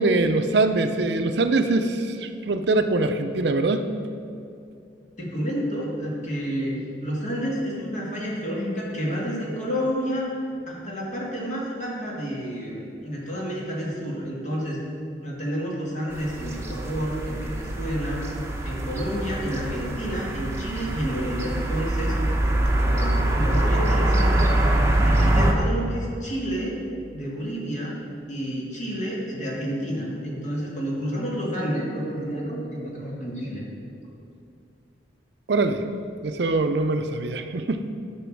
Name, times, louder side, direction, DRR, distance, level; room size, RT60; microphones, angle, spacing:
voice 1, 0.0-4.0 35.5-35.9 36.2-37.9, right 2 dB, 65° right, 8 dB, 0.5 m, -23 dB
voice 2, 5.2-6.8 7.0-10.3 10.7-14.8 15.2-18.3 18.6-22.1 22.8-24.5 25.0-26.7 27.1-28.0 28.3-33.6 34.1-34.2, equal, 40° left, -4 dB, 2.3 m, -30 dB
sound 1, 16.1-25.5, right 1 dB, 15° right, 0.9 m, -24 dB
10.0 x 6.1 x 6.3 m, 2.5 s
head